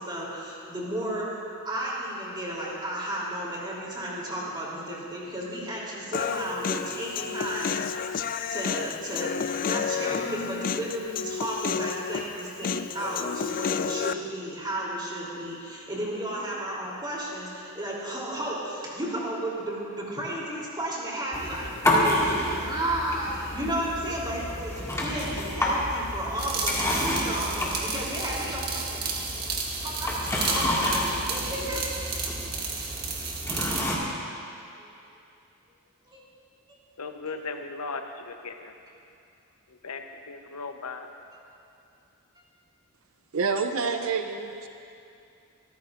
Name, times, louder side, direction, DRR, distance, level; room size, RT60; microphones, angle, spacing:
voice 1, 0.0-7.9 8.5-28.7 29.8-30.1 30.3-31.8 34.8-34.9 36.1-36.2, right 1 dB, 20° right, -5 dB, 3.4 m, -33 dB
Human voice, 6.1-14.1, left 7 dB, 40° left, 0.3 m, -31 dB
sound 1, 21.3-34.0, left 1 dB, 15° left, 2.1 m, -30 dB
sound 2, 26.4-33.9, right 4 dB, 45° right, 1.6 m, -33 dB
voice 2, 37.0-38.7 39.8-41.1, left 4 dB, 80° left, 5 dB, 0.9 m, -37 dB
voice 3, 43.3-44.7, right 4 dB, 65° right, 6 dB, 0.6 m, -27 dB
25.5 x 14.0 x 2.6 m, 2.6 s
head